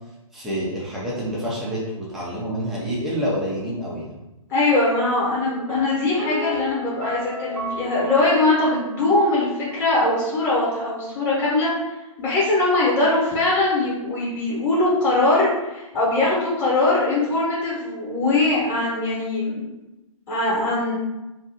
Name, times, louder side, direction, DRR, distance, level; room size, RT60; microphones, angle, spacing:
voice 1, 0.3-4.2, equal, ahead, -7 dB, 0.4 m, -27 dB
voice 2, 4.5-11.7 12.2-19.7 20.3-20.9, left 2 dB, 15° left, -7 dB, 0.9 m, -21 dB
Piano, 5.7-9.4 9.7-9.8, left 1 dB, 90° right, 0.9 m, -34 dB
2.6 x 2.3 x 3.9 m, 1.0 s
hypercardioid pair, 150°, 18 cm